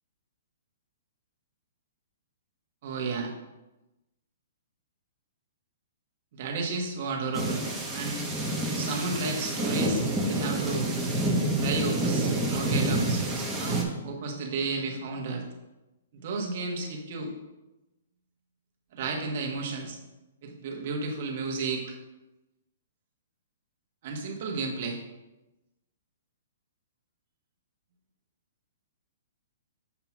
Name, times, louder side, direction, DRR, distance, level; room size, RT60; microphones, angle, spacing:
voice 1, 2.8-3.3 6.3-8.3 8.6-11.0 11.6-15.5 16.1-17.3 18.9-20.0 20.4-21.9 24.0-25.0, right 3 dB, 45° right, 1 dB, 1.2 m, -33 dB
sound 1, 7.3-13.8, right 1 dB, 5° right, 0.8 m, -28 dB
7.0 x 2.9 x 5.9 m, 1.0 s
hypercardioid pair, 170°, 0 cm